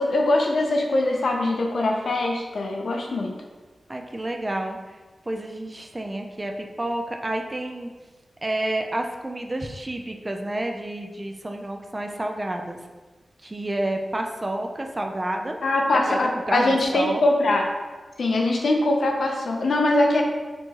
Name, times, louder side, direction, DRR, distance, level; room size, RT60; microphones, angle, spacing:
voice 1, 0.0-3.3 15.6-17.7 18.2-20.2, left 2 dB, 75° left, 1 dB, 0.6 m, -22 dB
voice 2, 3.9-5.0 5.3-7.9 8.4-12.8 13.4-15.6 15.9-16.2 16.5-17.2, right 1 dB, 25° right, 3 dB, 0.4 m, -29 dB
4.4 x 3.0 x 2.9 m, 1.3 s
wide cardioid pair, 75°, 0 cm